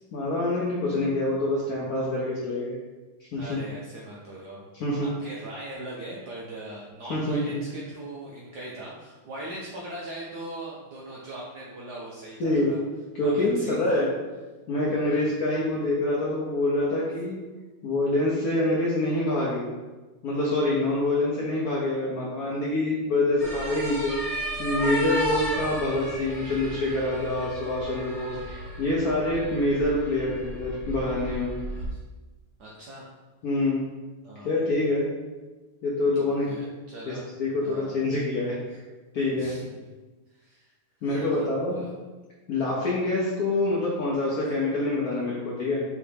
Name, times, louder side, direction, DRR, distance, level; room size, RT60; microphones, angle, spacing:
voice 1, 0.1-2.8 3.3-3.6 4.8-5.1 7.1-7.6 12.4-12.7 13.1-14.1 14.7-17.4 17.8-19.6 20.2-31.5 33.4-33.9 34.4-35.1 35.8-36.5 37.1-38.6 39.1-39.5 41.0-41.8 42.5-45.8, left 2 dB, 65° left, -5 dB, 0.9 m, -26 dB
voice 2, 3.3-4.7 5.0-12.8 13.2-14.0 15.1-15.3 31.6-32.0 32.6-33.1 34.2-34.9 36.2-37.3 37.6-38.0 39.3-39.8 40.3-40.7 41.0-41.9 42.5-42.7, right 1 dB, 70° right, -4 dB, 0.9 m, -40 dB
sound 1, 23.4-31.9, equal, 25° left, 1.2 m, -33 dB
4.6 x 3.1 x 3.4 m, 1.2 s
omnidirectional pair, 2.4 m